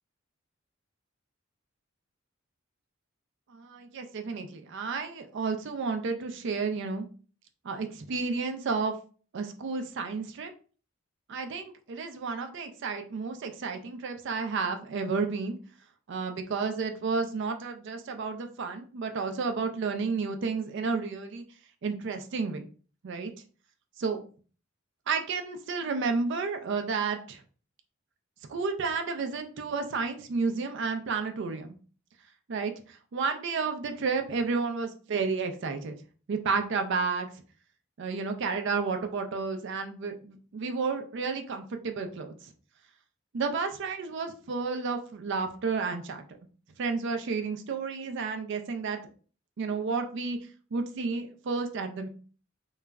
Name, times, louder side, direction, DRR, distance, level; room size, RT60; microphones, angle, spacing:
voice 1, 3.5-7.1 7.6-8.9 9.3-10.5 11.3-15.6 16.1-21.4 21.8-22.7 23.0-23.3 24.0-24.2 25.1-27.4 28.5-31.7 32.5-36.0 36.3-37.3 38.0-42.5 43.3-46.2 46.8-49.0 49.6-50.4 50.7-52.1, right 4 dB, 60° right, 6 dB, 0.4 m, -31 dB
2.3 x 2.0 x 3.4 m, 0.39 s
head